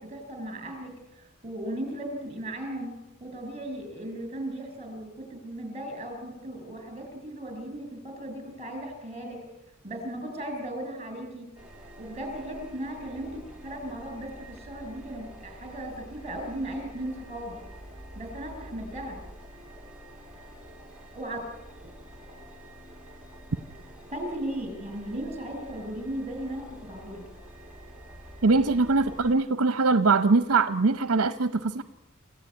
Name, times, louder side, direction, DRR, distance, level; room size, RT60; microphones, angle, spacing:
voice 1, 0.0-2.9 3.2-9.4 9.8-11.5 12.0-17.6 18.1-19.2 21.1-21.4 24.1-27.2, right 1 dB, 30° right, 6 dB, 6.4 m, -36 dB
sound 1, 11.5-29.3, equal, 5° right, 3.3 m, -47 dB
voice 2, 28.4-31.8, right 3 dB, 65° right, 13 dB, 0.9 m, -22 dB
27.5 x 15.5 x 9.6 m, 0.98 s
head